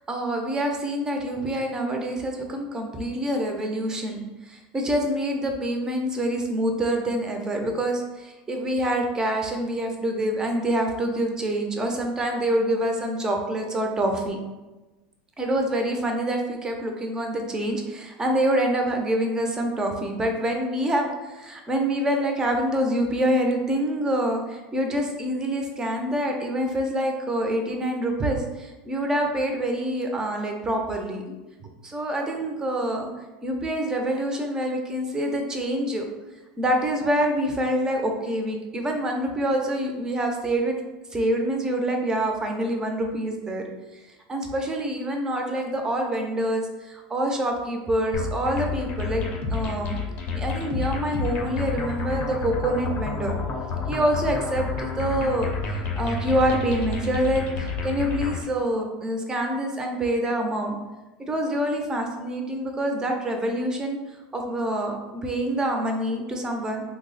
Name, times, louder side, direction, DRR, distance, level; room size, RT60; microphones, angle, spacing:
voice 1, 0.1-14.4 15.4-31.3 31.6-33.1 33.4-36.0 36.6-40.7 41.1-43.6 44.3-49.2 49.5-50.0 50.3-53.3 53.9-55.5 56.0-60.8 61.3-64.0 64.3-66.8, right 1 dB, 15° right, 2 dB, 0.5 m, -26 dB
sound 1, 48.1-58.5, left 4 dB, 40° left, 0.6 m, -30 dB
3.1 x 2.0 x 3.9 m, 1.1 s
supercardioid pair, 130°, 4 cm